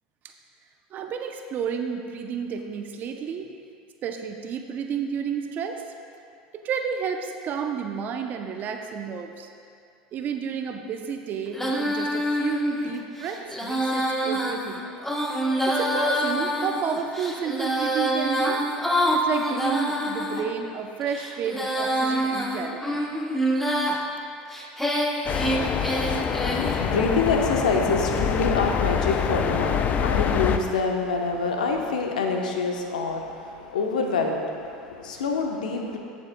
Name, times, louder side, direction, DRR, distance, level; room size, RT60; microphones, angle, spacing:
voice 1, 0.9-3.5 4.0-5.8 6.5-9.5 10.1-14.8 15.7-18.6 19.1-23.0, right 7 dB, 45° right, 5 dB, 0.6 m, -31 dB
Female singing, 11.5-20.4 21.0-24.0 24.5-26.8, equal, 5° left, 1.1 m, -26 dB
sound 1, 25.3-30.6, left 7 dB, 40° left, 0.5 m, -25 dB
voice 2, 25.7-36.0, left 4 dB, 90° left, 2 dB, 0.9 m, -26 dB
15.0 x 7.2 x 2.2 m, 2.4 s
hypercardioid pair, 90°, 4 cm